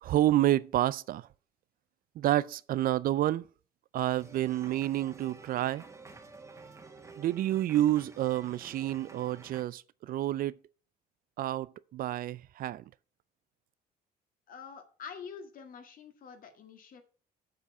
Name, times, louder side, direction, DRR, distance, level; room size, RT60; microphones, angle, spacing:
voice 1, 0.0-1.3 2.2-3.4 3.9-5.8 7.2-10.6 11.4-12.8, right 13 dB, 60° right, 0.4 m, -29 dB
sound 1, 4.2-9.6, right 3 dB, 20° right, 1.7 m, -51 dB
voice 2, 14.5-17.0, left 6 dB, 55° left, 2.0 m, -46 dB
7.5 x 6.8 x 5.8 m
cardioid pair, 110°, 17 cm